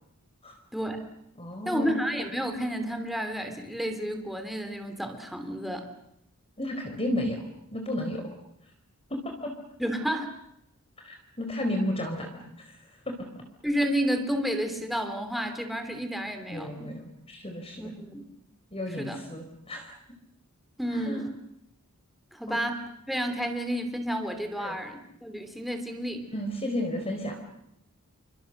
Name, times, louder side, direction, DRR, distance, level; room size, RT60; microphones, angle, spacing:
voice 1, 0.7-1.0 1.6-5.9 9.8-10.3 13.6-16.9 17.8-18.2 19.0-19.2 20.8-21.3 22.3-22.8 23.1-26.2, equal, ahead, 5 dB, 3.1 m, -31 dB
voice 2, 1.4-2.0 6.6-7.4 7.7-8.3 9.1-9.5 11.0-12.3 12.6-12.8 13.1-13.4 16.5-17.9 18.7-19.9 20.9-21.2 22.5-22.6 24.6-24.8 26.3-27.4, left 1 dB, 25° left, 3 dB, 4.2 m, -33 dB
29.0 x 25.0 x 6.7 m, 0.78 s
head